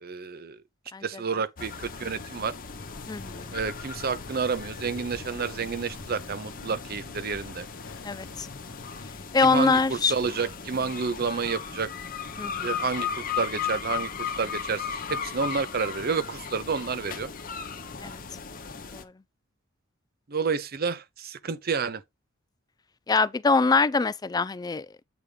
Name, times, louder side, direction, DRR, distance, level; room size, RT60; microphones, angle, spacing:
voice 1, 0.0-0.6 1.0-2.5 3.5-7.7 9.4-11.9 12.6-17.3 20.3-22.0, right 5 dB, 50° right, 0.7 m, -30 dB
sound 1, 1.6-19.0, left 6 dB, 45° left, 0.9 m, -37 dB
sound 2, 2.7-9.1, left 2 dB, 75° left, 1.1 m, -46 dB
voice 2, 3.1-3.5 8.0-8.5 9.3-10.1 12.4-12.7 18.0-18.1 18.9-19.1 23.1-25.0, left 4 dB, 20° left, 0.3 m, -24 dB
8.2 x 3.5 x 5.0 m
head